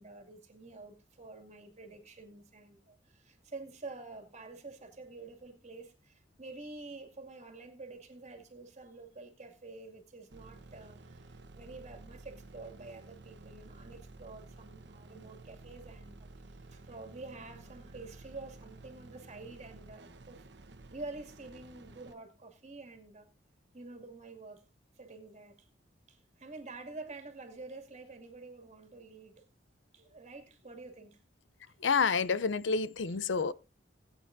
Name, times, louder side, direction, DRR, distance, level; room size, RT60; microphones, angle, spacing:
voice 1, 0.0-20.5 20.9-23.3 23.7-24.7 25.0-25.7 26.1-29.5 29.9-31.3, right 3 dB, 40° right, 2.4 m, -48 dB
sound 1, 10.3-22.1, right 2 dB, 65° right, 1.1 m, -53 dB
voice 2, 31.8-33.5, left 5 dB, 75° left, 0.6 m, -29 dB
20.0 x 8.8 x 2.6 m
head